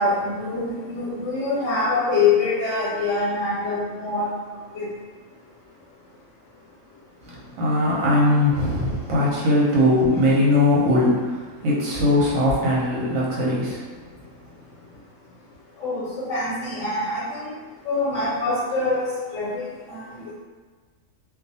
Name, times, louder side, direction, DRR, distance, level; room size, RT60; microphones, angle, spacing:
voice 1, 0.0-4.3 4.7-4.9 15.8-17.5 17.8-19.1 19.3-20.2, left 3 dB, 70° left, -8 dB, 1.0 m, -24 dB
voice 2, 7.2-13.9, left 1 dB, 80° right, -5 dB, 1.1 m, -20 dB
2.3 x 2.3 x 2.6 m, 1.4 s
omnidirectional pair, 1.4 m